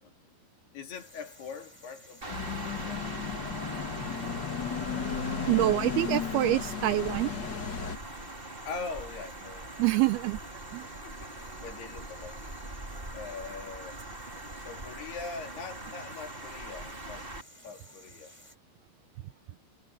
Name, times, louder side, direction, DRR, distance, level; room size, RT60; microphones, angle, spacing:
voice 1, 0.0-0.3 0.7-3.1 4.5-4.6 7.4-9.8 11.0-11.3 11.6-12.4 13.1-14.0 14.6-17.3 17.6-18.3, left 5 dB, 65° left, 5.1 m, -43 dB
sound 1, 0.9-18.6, equal, 5° left, 7.1 m, -55 dB
sound 2, 2.2-17.4, right 2 dB, 15° right, 3.0 m, -42 dB
sound 3, 2.3-8.0, left 6 dB, 45° left, 1.4 m, -34 dB
voice 2, 5.5-7.3 9.8-10.4 10.7-10.9, right 16 dB, 80° right, 2.4 m, -26 dB
omnidirectional pair, 5.0 m